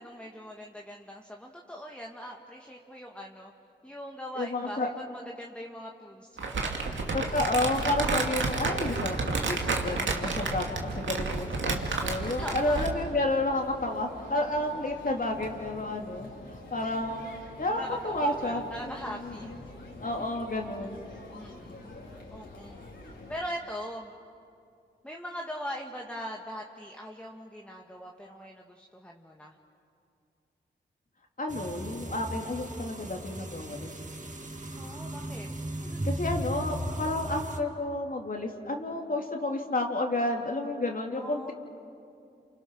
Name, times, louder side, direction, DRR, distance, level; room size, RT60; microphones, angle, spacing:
voice 1, 0.0-3.5 3.8-7.4 12.1-12.8 17.5-19.6 20.0-20.4 20.8-20.9 21.3-24.1 25.0-29.6 34.8-35.5 35.8-36.1 41.1-41.5, equal, 5° left, 0 dB, 2.0 m, -41 dB
voice 2, 4.3-4.9 7.1-17.3 17.6-18.6 19.2-19.5 20.0-21.0 31.4-33.9 36.0-41.5, left 2 dB, 45° left, 1 dB, 2.9 m, -31 dB
Crumpling crinkling, 6.4-13.0, right 3 dB, 75° right, 2.4 m, -30 dB
sound 1, 7.0-23.4, left 2 dB, 70° left, 4.3 m, -46 dB
sound 2, 31.5-37.6, right 1 dB, 40° right, 2.3 m, -36 dB
28.5 x 25.0 x 6.2 m, 2.5 s
cardioid pair, 45°, 20 cm